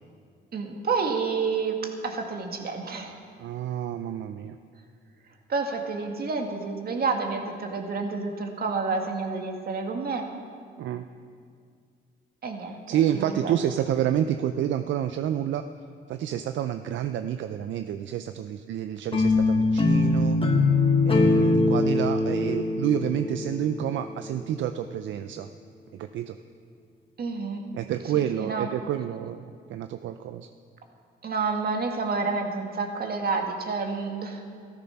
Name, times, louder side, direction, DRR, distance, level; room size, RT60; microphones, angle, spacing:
voice 1, 0.5-3.2 5.5-10.3 12.4-13.6 27.2-27.6 28.1-28.7 31.2-34.5, right 4 dB, 50° right, 3 dB, 1.9 m, -29 dB
voice 2, 3.4-4.6 10.8-11.1 12.9-15.6 16.1-20.4 21.1-25.5 25.9-26.4 27.7-30.5, right 10 dB, 75° right, 9 dB, 0.5 m, -29 dB
sound 1, 19.1-24.2, left 3 dB, 25° left, 1.3 m, -22 dB
13.5 x 13.5 x 5.9 m, 2.2 s
cardioid pair, 90°, 20 cm